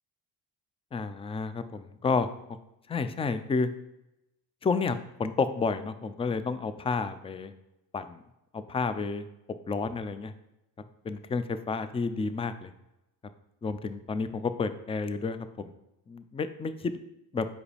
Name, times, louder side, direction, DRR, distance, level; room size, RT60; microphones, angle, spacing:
voice 1, 0.9-2.3 2.9-3.7 4.6-7.5 7.9-8.2 8.5-9.2 9.7-10.3 11.0-12.7 13.6-15.4 16.1-16.9 17.3-17.5, left 4 dB, 15° left, 12 dB, 0.3 m, -30 dB
6.4 x 4.8 x 3.4 m, 0.91 s
cardioid pair, 80°, 43 cm